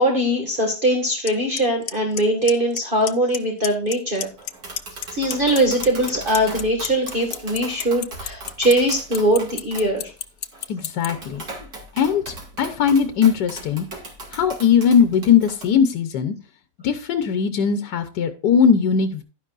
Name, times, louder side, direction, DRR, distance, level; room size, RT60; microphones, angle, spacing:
voice 1, 0.0-4.3 5.1-10.1, right 1 dB, 30° right, 0 dB, 1.9 m, -21 dB
Clock, 1.3-1.4 1.6-2.8 3.1-3.4 3.6-4.5 4.8-11.1, left 10 dB, 65° left, 0.6 m, -28 dB
Tap, 4.4-15.6, right 2 dB, 65° right, 2.9 m, -38 dB
voice 2, 10.7-11.4 11.9-13.9 14.3-16.3 16.8-19.2, left 7 dB, 90° left, 8 dB, 1.5 m, -19 dB
11.5 x 10.0 x 2.5 m, 0.34 s
omnidirectional pair, 1.8 m